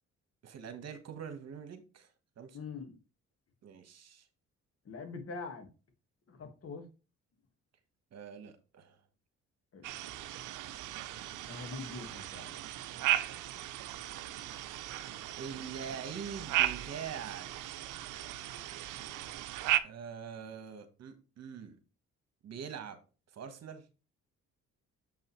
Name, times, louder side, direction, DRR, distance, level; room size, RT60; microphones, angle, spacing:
voice 1, 0.4-2.1 2.4-2.6 3.6-4.3 8.1-9.0 15.4-17.5 17.8-18.0 19.8-21.8 22.4-23.0 23.3-23.8, right 7 dB, 60° right, 1.4 m, -44 dB
voice 2, 2.5-2.9 4.9-5.7 6.3-6.9 9.7-9.8 11.5-12.6, left 4 dB, 50° left, 1.7 m, -43 dB
sound 1, 9.8-19.8, right 13 dB, 80° right, 0.6 m, -36 dB
7.3 x 5.7 x 3.1 m
cardioid pair, 90°, 30 cm